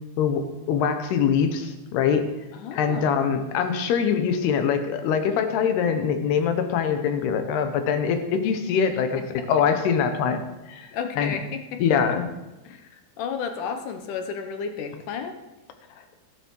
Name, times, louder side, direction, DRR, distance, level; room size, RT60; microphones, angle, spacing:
voice 1, 0.2-2.3 2.7-10.4 10.7-10.9 11.2-11.4 11.8-12.3, left 7 dB, 90° left, 8 dB, 3.3 m, -23 dB
voice 2, 2.5-3.3 9.2-9.5 10.9-11.8 12.6-15.4, left 6 dB, 70° left, 7 dB, 2.2 m, -33 dB
14.0 x 11.5 x 4.7 m, 1.0 s
omnidirectional pair, 4.5 m